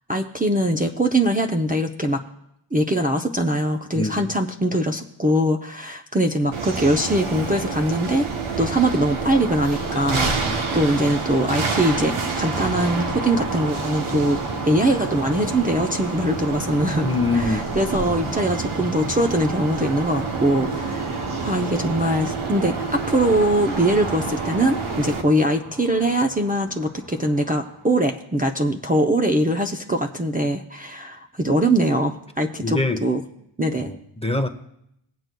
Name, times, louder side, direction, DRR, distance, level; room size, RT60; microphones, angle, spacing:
voice 1, 0.1-2.2 2.7-8.3 8.6-10.3 10.7-17.1 17.3-33.2 33.6-33.9, right 1 dB, 20° right, 2 dB, 0.6 m, -22 dB
voice 2, 3.9-4.3 10.5-10.6 17.0-17.6 32.6-33.0 33.8-34.5, left 2 dB, 10° left, 6 dB, 0.8 m, -24 dB
sound 1, 6.5-25.2, right 4 dB, 85° right, 1.0 m, -29 dB
sound 2, 9.3-28.1, right 2 dB, 35° right, 1.0 m, -34 dB
22.5 x 7.7 x 2.2 m, 0.79 s
wide cardioid pair, 55°, 49 cm